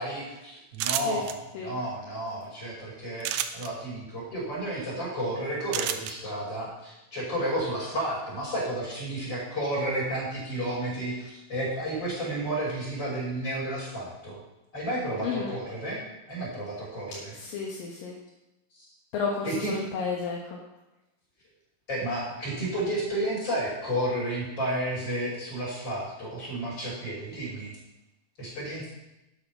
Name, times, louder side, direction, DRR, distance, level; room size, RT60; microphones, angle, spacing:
voice 1, 0.0-14.4 14.7-16.0 16.3-17.3 18.8-18.9 19.4-19.7 21.9-27.7 28.4-28.9, right 1 dB, 30° left, -5 dB, 6.3 m, -32 dB
sound 1, 0.8-1.3 3.2-3.7 5.7-6.1, right 11 dB, 80° right, 2.3 m, -29 dB
voice 2, 15.2-15.5 17.3-18.2 19.1-20.6, left 5 dB, 70° left, -1 dB, 2.9 m, -32 dB
12.0 x 8.9 x 5.8 m, 0.95 s
omnidirectional pair, 4.3 m